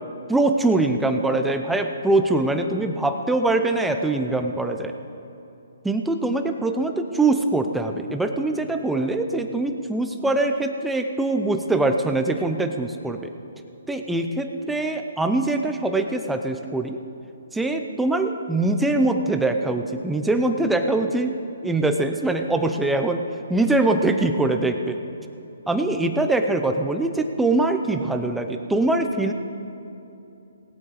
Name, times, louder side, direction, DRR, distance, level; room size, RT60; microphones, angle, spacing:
voice 1, 0.3-4.9 5.8-13.3 13.9-17.0 17.5-21.4 21.6-25.0 25.7-29.3, right 2 dB, 5° right, 6 dB, 0.7 m, -23 dB
18.0 x 8.6 x 4.9 m, 2.9 s
hypercardioid pair, 150°, 0 cm